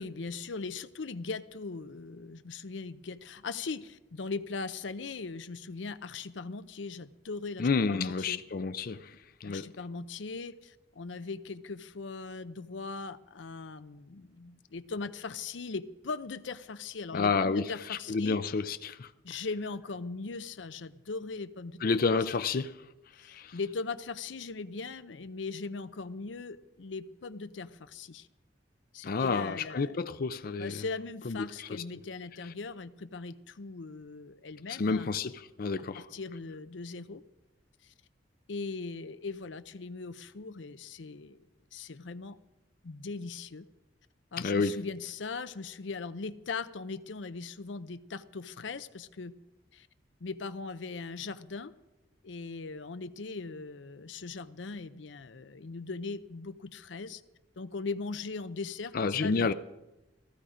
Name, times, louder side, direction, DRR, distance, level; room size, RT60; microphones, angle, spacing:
voice 1, 0.0-8.4 9.4-18.4 19.2-21.8 23.2-28.3 28.9-30.0 30.6-35.2 35.8-37.2 37.8-37.9 38.5-41.4 41.7-42.4 42.8-43.6 44.3-49.3 49.7-49.9 50.2-51.7 52.2-57.2 57.6-59.5, left 4 dB, 90° left, 0.6 m, -39 dB
voice 2, 7.6-9.2 9.4-9.7 17.1-19.1 21.8-22.8 23.3-23.6 29.0-30.8 31.3-31.7 34.7-36.1 44.4-44.8 58.9-59.5, left 4 dB, 55° left, 0.5 m, -30 dB
15.5 x 13.5 x 5.0 m
head